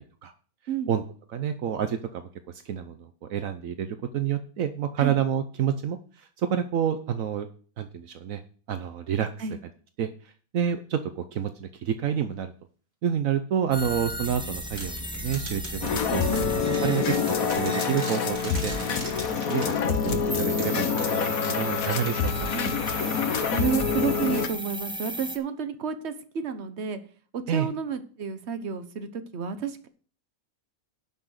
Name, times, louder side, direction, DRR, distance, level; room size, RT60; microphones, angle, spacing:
voice 1, 1.3-7.5 7.8-8.4 8.7-9.3 10.0-10.1 10.5-12.5 13.0-22.5 27.5-27.7, right 9 dB, 75° right, 9 dB, 1.2 m, -29 dB
sound 1, 13.7-25.4, right 1 dB, 5° right, 1.0 m, -36 dB
sound 2, 14.8-23.2, right 1 dB, 30° right, 3.2 m, -42 dB
sound 3, 15.8-24.5, left 6 dB, 80° left, 1.4 m, -26 dB
voice 2, 23.3-27.0 27.3-29.9, right 6 dB, 55° right, 9 dB, 1.3 m, -31 dB
11.0 x 6.0 x 6.5 m, 0.42 s
omnidirectional pair, 1.4 m